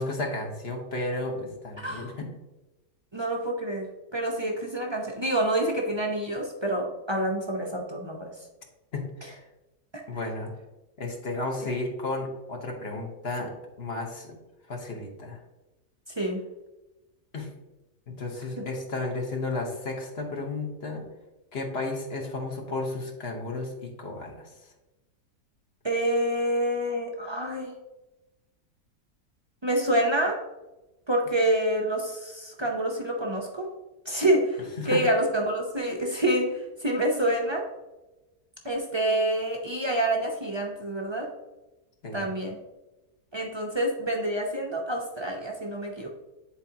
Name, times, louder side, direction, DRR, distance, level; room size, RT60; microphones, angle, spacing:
voice 1, 0.0-2.3 8.9-9.3 10.1-10.5 11.0-13.5 13.8-14.4 14.7-15.4 17.3-17.5 18.1-21.1 21.5-24.5 34.8-35.0 42.0-42.3, left 2 dB, 45° left, 2 dB, 1.2 m, -33 dB
voice 2, 1.8-2.1 3.1-8.3 11.6-11.7 16.1-16.4 25.8-27.7 29.6-30.4 31.1-33.7 34.1-37.6 38.6-41.3 42.1-42.5 43.3-46.1, right 1 dB, 35° right, 0 dB, 0.4 m, -27 dB
10.0 x 4.4 x 2.8 m, 1.0 s
omnidirectional pair, 1.7 m